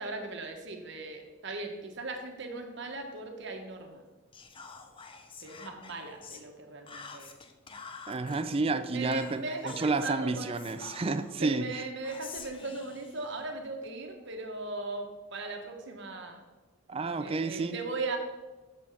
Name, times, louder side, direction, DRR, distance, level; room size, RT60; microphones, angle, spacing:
voice 1, 0.0-4.0 5.4-7.3 8.9-10.6 11.4-16.4 17.2-18.2, right 3 dB, 60° right, 4 dB, 1.2 m, -38 dB
Whispering, 4.3-6.5 6.9-8.4 9.1-9.9 10.5-11.4 12.0-13.9, left 5 dB, 25° left, 0.6 m, -48 dB
voice 2, 8.1-11.8 16.9-17.8, right 3 dB, 30° right, 11 dB, 0.4 m, -30 dB
6.9 x 5.3 x 6.0 m, 1.2 s
head